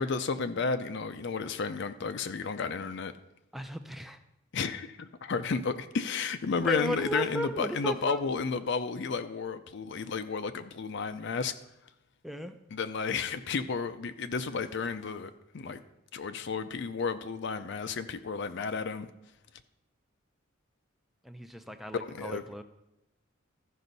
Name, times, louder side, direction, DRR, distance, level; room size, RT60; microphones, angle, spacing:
voice 1, 0.0-3.1 4.5-11.5 12.7-15.8 16.1-19.1 22.0-22.4, left 5 dB, 55° left, 10 dB, 0.5 m, -32 dB
voice 2, 3.5-4.2 6.6-8.2 12.2-12.5 21.2-22.6, equal, ahead, 8 dB, 0.4 m, -35 dB
14.0 x 5.4 x 4.0 m, 0.88 s
head